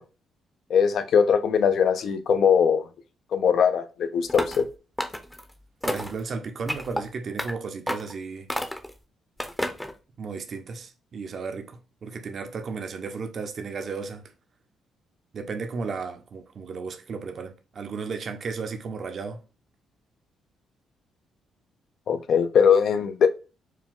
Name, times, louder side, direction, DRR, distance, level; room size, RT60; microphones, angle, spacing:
voice 1, 0.7-2.9 3.3-4.7 22.1-23.3, left 7 dB, 65° left, 0.6 m, -21 dB
sound 1, 4.3-4.7 5.0-5.4 5.8-6.2 6.7-7.0 7.4-7.5 7.9-8.1 8.5-8.9 9.4-9.9, left 1 dB, 10° left, 0.7 m, -30 dB
voice 2, 5.8-8.5 10.2-14.2 15.3-19.4, right 4 dB, 50° right, 0.7 m, -34 dB
4.6 x 2.3 x 3.6 m
cardioid pair, 90°, 0 cm